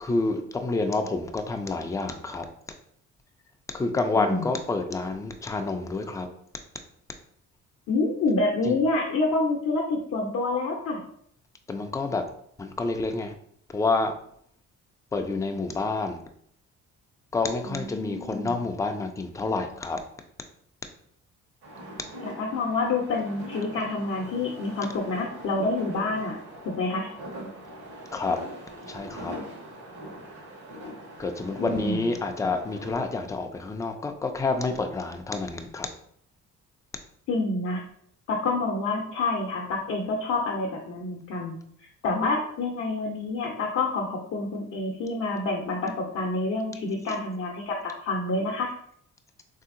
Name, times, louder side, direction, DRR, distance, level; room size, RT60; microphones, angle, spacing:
voice 1, 0.0-2.5 3.7-6.3 8.7-8.8 11.7-12.2 12.6-13.3 13.7-14.1 15.1-16.2 17.3-20.0 28.1-28.4 28.9-29.3 31.2-35.9, left 3 dB, 10° left, 6 dB, 0.3 m, -28 dB
voice 2, 4.1-4.5 7.9-11.0 17.6-18.6 22.2-26.3 26.6-27.1 31.6-32.0 37.3-37.8 38.3-48.7, left 3 dB, 60° left, -1 dB, 0.6 m, -28 dB
sound 1, 21.6-33.1, right 1 dB, 75° right, 1.2 m, -42 dB
3.3 x 2.8 x 2.5 m, 0.66 s
cardioid pair, 90°, 30 cm